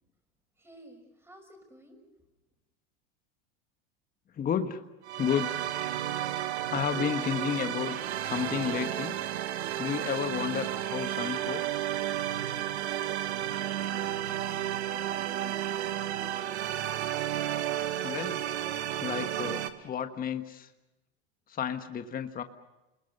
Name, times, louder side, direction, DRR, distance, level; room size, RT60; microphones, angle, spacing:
voice 1, 0.6-2.0 13.3-14.6 14.9-16.3, right 1 dB, 10° right, 5 dB, 6.1 m, -53 dB
voice 2, 4.3-4.8 5.2-5.5 6.7-9.2 9.8-11.9 18.0-18.4 18.9-20.7 21.5-22.4, left 8 dB, 25° left, 7 dB, 1.4 m, -32 dB
sound 1, 5.0-19.7, right 12 dB, 90° right, 1.5 m, -32 dB
30.0 x 21.0 x 6.8 m, 1.0 s
supercardioid pair, 115°, 32 cm